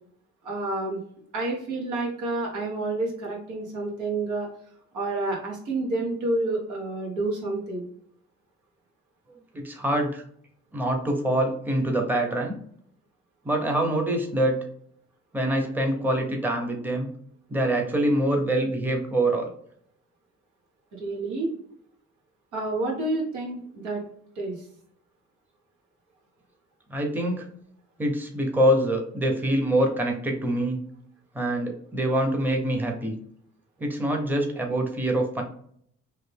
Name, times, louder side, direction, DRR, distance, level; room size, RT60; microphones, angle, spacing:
voice 1, 0.4-1.0 1.3-4.5 4.9-7.8 20.9-21.5 22.5-24.0 24.3-24.6, right 2 dB, 85° right, -3 dB, 1.4 m, -29 dB
voice 2, 9.5-10.2 10.7-12.5 13.4-14.6 15.3-17.1 17.5-19.5 26.9-27.5 28.0-30.8 31.3-33.1 33.8-35.4, right 1 dB, 5° right, 2 dB, 0.7 m, -25 dB
3.1 x 2.4 x 3.4 m, 0.65 s
cardioid pair, 90°, 30 cm